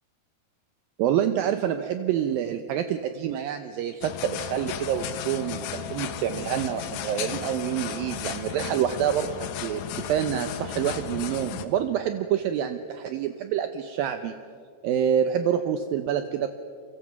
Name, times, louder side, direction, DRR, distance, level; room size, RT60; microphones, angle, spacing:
voice 1, 1.0-14.4 14.8-16.5, right 9 dB, 75° right, 8 dB, 2.3 m, -27 dB
sound 1, 4.0-11.7, left 9 dB, 85° left, 3.3 m, -34 dB
30.0 x 23.5 x 6.0 m, 2.2 s
omnidirectional pair, 4.7 m